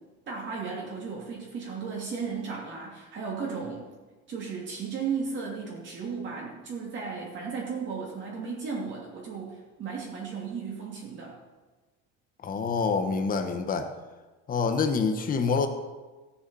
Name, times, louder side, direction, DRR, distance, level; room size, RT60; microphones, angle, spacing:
voice 1, 0.3-3.9 4.3-11.4, right 5 dB, 40° right, -4 dB, 2.8 m, -35 dB
voice 2, 12.4-13.9 14.5-15.7, left 5 dB, 30° left, 7 dB, 1.3 m, -26 dB
16.0 x 7.1 x 7.0 m, 1.2 s
cardioid pair, 170°, 30 cm